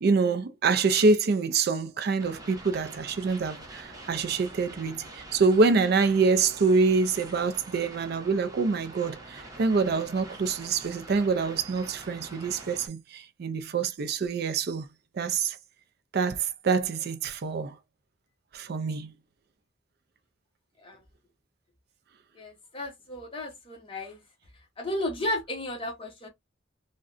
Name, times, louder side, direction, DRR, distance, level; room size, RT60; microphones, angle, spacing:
voice 1, 0.0-14.9 15.1-15.6 16.1-17.8 18.5-19.1, right 4 dB, 55° right, 0.4 m, -26 dB
sound 1, 2.2-12.9, right 2 dB, 20° right, 0.8 m, -45 dB
voice 2, 22.4-24.2 24.8-26.3, left 1 dB, 30° left, 0.9 m, -33 dB
3.6 x 2.2 x 2.4 m
head